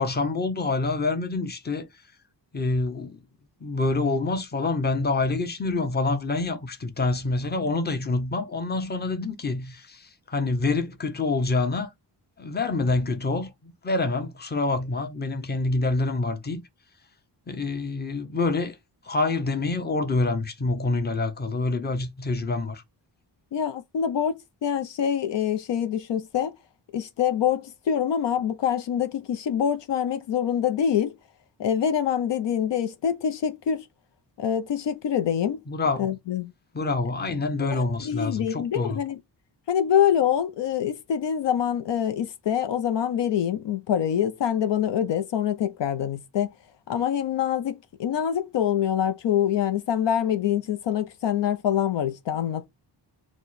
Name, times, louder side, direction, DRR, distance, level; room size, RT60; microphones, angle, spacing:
voice 1, 0.0-1.9 2.5-3.2 3.6-11.9 12.4-16.6 17.5-18.8 19.0-22.8 35.7-36.1 36.7-39.0, left 3 dB, 25° left, 0.7 m, -26 dB
voice 2, 23.5-26.5 26.9-31.1 31.6-33.8 34.4-35.6 36.0-36.5 37.6-39.2 39.7-46.5 46.9-52.7, left 9 dB, 75° left, 0.6 m, -25 dB
4.5 x 2.2 x 4.0 m
wide cardioid pair, 120°, 43 cm